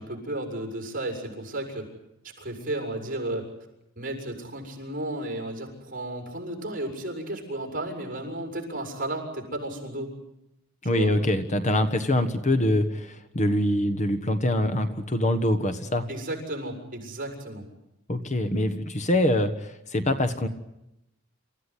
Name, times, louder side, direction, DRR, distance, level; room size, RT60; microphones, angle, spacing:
voice 1, 0.0-1.9 2.4-3.5 4.0-10.1 10.9-11.1 16.1-17.6, right 1 dB, 40° right, 3 dB, 6.5 m, -33 dB
voice 2, 10.8-16.1 18.1-20.5, left 1 dB, 35° left, 10 dB, 1.4 m, -24 dB
28.0 x 15.5 x 10.0 m, 0.88 s
head